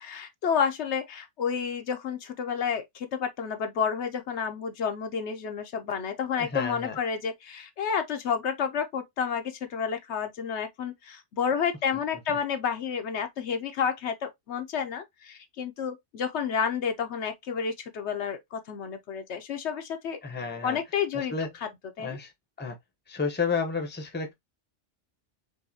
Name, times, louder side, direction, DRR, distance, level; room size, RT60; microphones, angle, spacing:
voice 1, 0.0-20.2 20.6-21.3 22.0-22.2, left 7 dB, 70° left, 1.0 m, -30 dB
voice 2, 6.3-7.0 11.9-12.0 12.3-12.4 20.2-20.8 21.1-21.5 22.0-22.3 22.6-22.8 23.1-24.3, left 5 dB, 10° left, 0.7 m, -31 dB
4.7 x 2.6 x 2.7 m
omnidirectional pair, 1.2 m